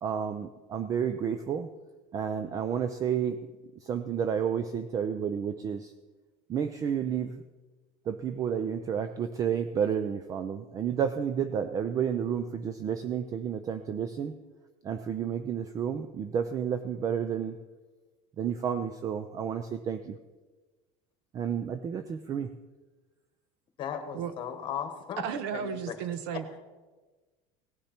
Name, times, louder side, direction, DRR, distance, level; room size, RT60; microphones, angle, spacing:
voice 1, 0.0-1.7 2.1-3.5 3.8-5.9 6.5-7.4 8.1-14.3 14.8-17.6 18.4-20.2 21.3-22.5, right 8 dB, 25° right, 10 dB, 0.4 m, -31 dB
voice 2, 23.8-25.2 25.5-25.9, left 8 dB, 35° left, 7 dB, 1.5 m, -36 dB
voice 3, 25.2-26.6, right 7 dB, 80° right, 12 dB, 1.1 m, -34 dB
17.5 x 10.0 x 4.4 m, 1.3 s
cardioid pair, 170°, 14 cm